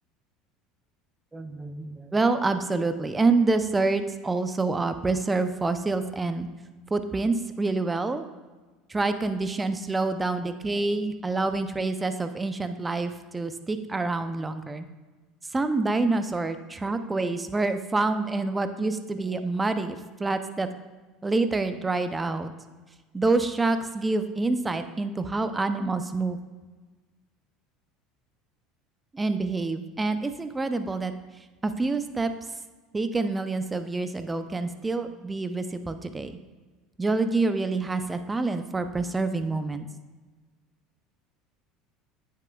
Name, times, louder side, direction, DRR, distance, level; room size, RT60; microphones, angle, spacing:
voice 1, 1.3-6.5 6.9-8.3 8.9-14.8 15.5-20.7 21.2-22.5 23.1-26.4 29.1-31.1 31.6-32.3 32.9-36.4 37.0-39.9, right 3 dB, 15° right, 9 dB, 0.5 m, -27 dB
9.0 x 6.6 x 2.3 m, 1.3 s
hypercardioid pair, 85°, 0 cm